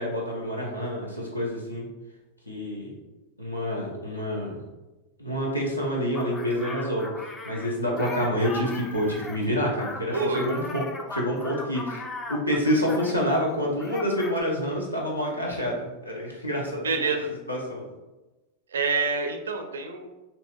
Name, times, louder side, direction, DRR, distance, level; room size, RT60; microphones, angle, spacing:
voice 1, 0.0-1.9 2.5-2.9 3.4-4.5 5.2-10.8 11.1-17.1 17.5-17.8, equal, 85° left, -2 dB, 0.8 m, -28 dB
sound 1, 6.1-13.5 13.7-14.4, left 2 dB, 15° left, 0.4 m, -38 dB
voice 2, 10.1-10.5 16.8-17.3 18.7-20.1, right 4 dB, 65° right, 5 dB, 0.4 m, -27 dB
4.2 x 2.6 x 2.3 m, 1.1 s
figure-of-eight pair, 90°, 0 cm